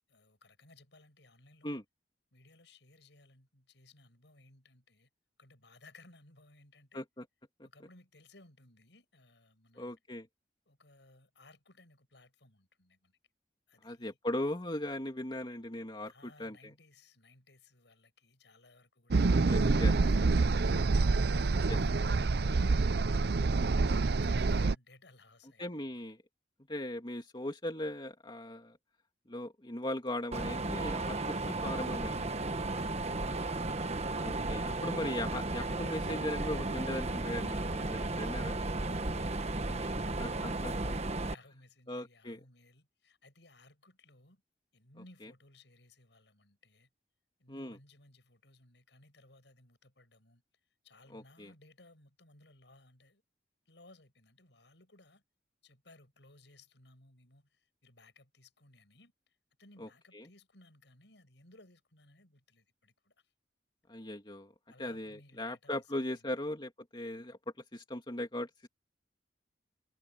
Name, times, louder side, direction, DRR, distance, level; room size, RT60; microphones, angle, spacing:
voice 1, 0.1-1.7 2.3-5.1 5.4-7.0 7.6-9.9 10.7-13.1 13.7-14.2 16.1-19.3 19.9-21.0 21.6-23.5 23.9-26.0 32.6-34.2 34.8-35.5 37.4-40.6 41.3-44.4 44.7-46.9 47.4-50.4 50.8-53.2 53.7-55.2 55.6-57.5 57.8-59.1 59.6-63.1 64.7-66.2, left 2 dB, 75° left, 7.8 m, -61 dB
voice 2, 6.9-7.3 9.8-10.3 13.8-16.7 19.4-19.9 21.7-21.8 25.6-26.2 26.7-28.8 29.3-32.3 34.2-38.6 40.2-40.9 41.9-42.4 45.2-45.3 47.5-47.8 51.1-51.5 59.8-60.3 63.9-64.5 64.8-67.4 67.7-68.7, left 1 dB, 25° left, 2.7 m, -39 dB
sound 1, 19.1-24.7, right 3 dB, 60° right, 0.6 m, -27 dB
Mechanisms, 30.3-41.3, right 2 dB, 35° right, 1.2 m, -34 dB
head